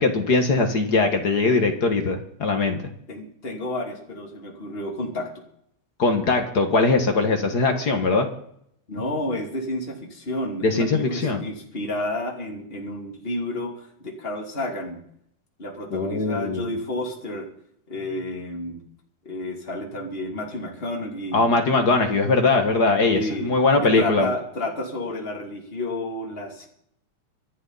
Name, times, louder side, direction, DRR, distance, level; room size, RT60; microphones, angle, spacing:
voice 1, 0.0-2.8 6.0-8.3 10.6-11.4 15.9-16.7 21.3-24.3, left 3 dB, 40° left, 5 dB, 1.6 m, -21 dB
voice 2, 3.1-5.3 8.9-15.0 15.6-17.5 17.9-18.8 19.2-21.5 23.1-23.5 23.8-26.7, left 1 dB, 20° left, 1 dB, 2.7 m, -31 dB
25.5 x 11.0 x 4.1 m, 0.70 s
omnidirectional pair, 3.6 m